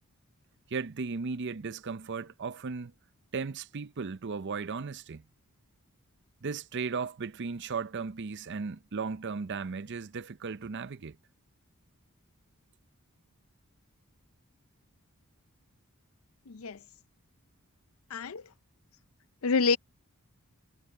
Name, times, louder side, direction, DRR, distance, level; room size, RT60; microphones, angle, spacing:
voice 1, 0.7-2.9 3.3-5.2 6.4-11.2, right 5 dB, 50° right, 0.6 m, -36 dB
voice 2, 16.5-16.8 18.1-18.4 19.4-19.8, left 4 dB, 65° left, 0.6 m, -27 dB
head